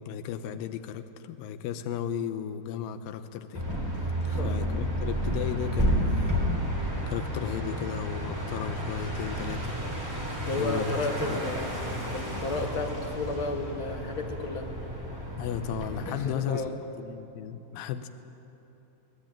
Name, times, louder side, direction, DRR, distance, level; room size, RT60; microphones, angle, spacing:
voice 1, 0.0-3.7 4.4-9.8 10.1-10.9 11.3-11.4 15.4-16.6 17.0-18.1, left 8 dB, 80° left, 8 dB, 2.5 m, -35 dB
sound 1, 3.5-16.1, equal, 5° right, 3.6 m, -31 dB
voice 2, 4.2-4.6 10.4-11.7 12.1-14.7 16.1-16.8, left 2 dB, 45° left, 2 dB, 2.1 m, -33 dB
24.5 x 18.5 x 9.0 m, 3.0 s
omnidirectional pair, 4.3 m